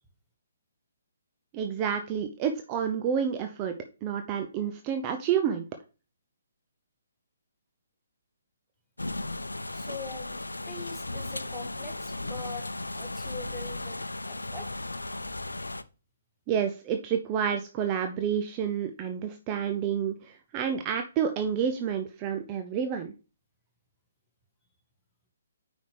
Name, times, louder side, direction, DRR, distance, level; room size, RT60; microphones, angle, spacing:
voice 1, 1.5-3.8 4.0-5.6 16.5-23.1, right 8 dB, 25° right, 6 dB, 0.7 m, -29 dB
sound 1, 9.0-15.8, left 2 dB, 90° left, 0.5 m, -36 dB
voice 2, 9.7-10.4 10.7-12.7 12.9-14.0 14.2-14.7, left 3 dB, 5° left, -1 dB, 2.0 m, -42 dB
9.3 x 5.1 x 3.4 m, 0.33 s
figure-of-eight pair, 135°, 0 cm